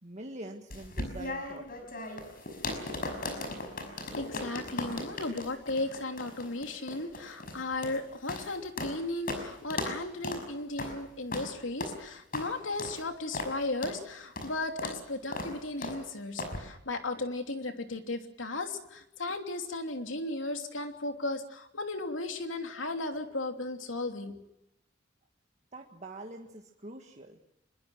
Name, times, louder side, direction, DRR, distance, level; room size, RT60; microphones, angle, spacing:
voice 1, 0.0-1.9 25.7-27.4, right 2 dB, 35° right, 2 dB, 1.9 m, -45 dB
sound 1, 0.7-9.0 9.3-9.4 9.7-10.0 10.2-10.4 10.8-10.9 11.3-11.5 11.8-12.0 12.3-12.5 12.8-13.0 13.3-13.5 13.8-14.0 14.4-14.5 14.8-15.0 15.3-15.5 15.8-16.0 16.4-16.6, left 2 dB, 50° left, 5.7 m, -37 dB
voice 2, 4.1-24.4, left 2 dB, 85° left, 5 dB, 3.0 m, -35 dB
25.5 x 22.5 x 6.4 m, 0.84 s
head